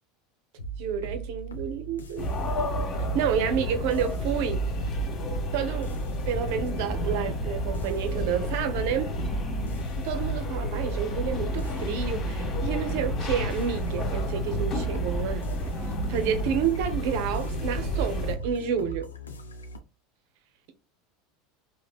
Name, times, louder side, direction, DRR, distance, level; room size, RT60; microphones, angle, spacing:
sound 1, 0.6-19.8, right 3 dB, 85° left, 0.5 m, -39 dB
voice 1, 0.8-2.3 3.1-4.6 5.5-5.9 6.3-9.1 10.0-15.5 16.1-19.1, right 7 dB, 60° right, 0.6 m, -29 dB
sound 2, 2.2-18.3, equal, 40° left, 1.3 m, -31 dB
sound 3, 7.0-9.9 10.2-16.8, left 1 dB, 10° left, 1.0 m, -42 dB
3.3 x 2.1 x 2.3 m
hypercardioid pair, 80°, 0 cm